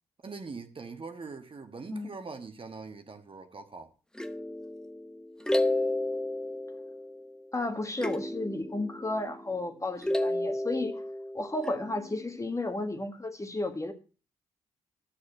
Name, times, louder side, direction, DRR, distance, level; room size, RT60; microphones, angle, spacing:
voice 1, 0.2-3.9, right 4 dB, 40° right, 1.4 m, -42 dB
sound 1, 4.2-7.5 8.0-9.7 10.0-12.4, left 1 dB, 5° left, 0.9 m, -33 dB
voice 2, 7.5-11.0 11.3-13.9, left 2 dB, 20° left, 1.7 m, -33 dB
11.5 x 6.5 x 5.6 m
hypercardioid pair, 45°, 14 cm